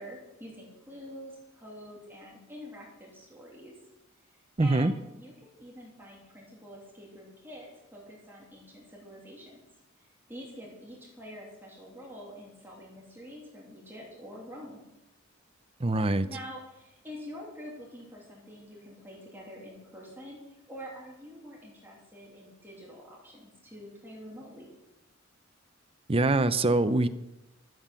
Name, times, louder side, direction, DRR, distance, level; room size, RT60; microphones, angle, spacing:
voice 1, 0.0-3.7 4.3-9.6 10.3-14.8 16.2-24.7, equal, 10° right, -3 dB, 2.9 m, -46 dB
voice 2, 4.6-4.9 15.8-16.3 26.1-27.1, right 2 dB, 30° right, 12 dB, 0.6 m, -24 dB
12.5 x 7.5 x 7.6 m, 0.92 s
head